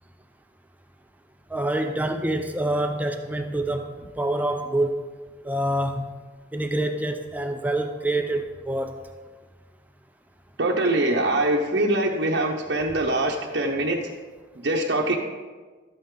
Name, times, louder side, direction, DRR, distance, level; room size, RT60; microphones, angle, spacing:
voice 1, 1.5-5.0 5.4-6.0 6.5-8.9, right 1 dB, 10° right, 5 dB, 0.5 m, -26 dB
voice 2, 10.6-14.0 14.6-15.2, right 1 dB, 60° right, -2 dB, 0.8 m, -23 dB
12.5 x 9.0 x 3.8 m, 1.4 s
head